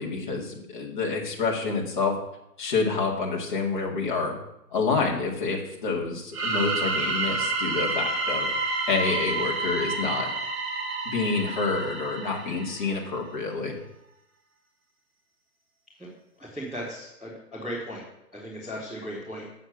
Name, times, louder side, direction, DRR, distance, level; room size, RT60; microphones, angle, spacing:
voice 1, 0.0-2.1 2.6-4.3 4.7-8.5 8.9-10.3 11.1-13.7, left 4 dB, 30° left, -2 dB, 2.1 m, -28 dB
sound 1, 6.3-13.0, right 3 dB, 60° right, 3.0 m, -29 dB
voice 2, 16.4-18.0 18.3-19.5, equal, ahead, -16 dB, 0.9 m, -36 dB
7.8 x 7.7 x 7.2 m, 0.84 s
hypercardioid pair, 165°, 48 cm